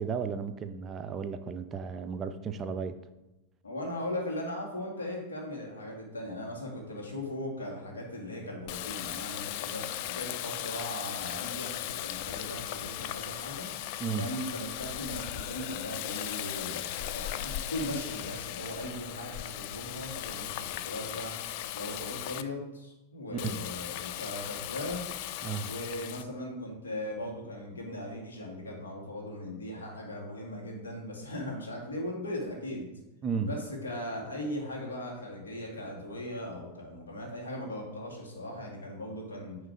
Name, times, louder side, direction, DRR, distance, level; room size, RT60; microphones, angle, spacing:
voice 1, 0.0-3.0 14.0-14.3 23.4-23.6 25.4-25.7 33.2-33.5, right 5 dB, 25° right, 9 dB, 0.4 m, -34 dB
voice 2, 3.6-13.7 14.2-21.3 21.7-25.1 25.7-32.9 33.4-39.6, left 1 dB, 70° left, 0 dB, 1.9 m, -38 dB
Water tap faucet, 8.7-22.4 23.4-26.2, left 13 dB, 45° left, 0.3 m, -37 dB
9.0 x 3.1 x 4.9 m, 0.97 s
figure-of-eight pair, 90°, 0 cm